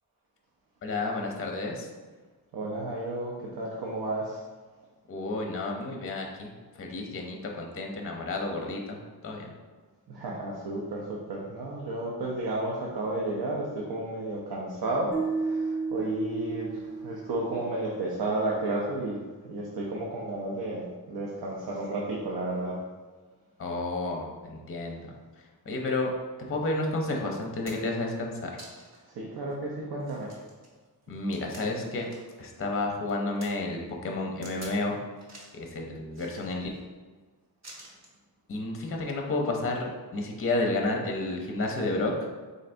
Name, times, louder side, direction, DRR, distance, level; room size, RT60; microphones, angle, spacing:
voice 1, 0.8-1.9 5.1-6.5 6.8-9.0 9.2-9.5 23.6-25.1 25.7-26.1 26.5-28.5 31.1-32.1 32.4-35.0 35.5-36.7 38.5-42.3, left 2 dB, 35° left, 1 dB, 0.5 m, -31 dB
voice 2, 2.5-4.4 10.1-16.7 17.0-19.2 19.4-20.8 21.1-22.8 29.2-30.3, right 2 dB, 75° right, -3 dB, 0.7 m, -32 dB
sound 1, 15.1-18.3, right 4 dB, 20° right, 0.5 m, -33 dB
sound 2, 26.8-26.9 27.4-28.0 28.6-29.1 29.5-29.6 30.0-32.4 32.7-33.5 34.4-34.8 35.2-35.6 36.1-36.8 37.6-38.2 39.2-39.4, right 1 dB, 40° right, 0.9 m, -49 dB
3.9 x 3.2 x 2.5 m, 1.4 s
wide cardioid pair, 140°, 39 cm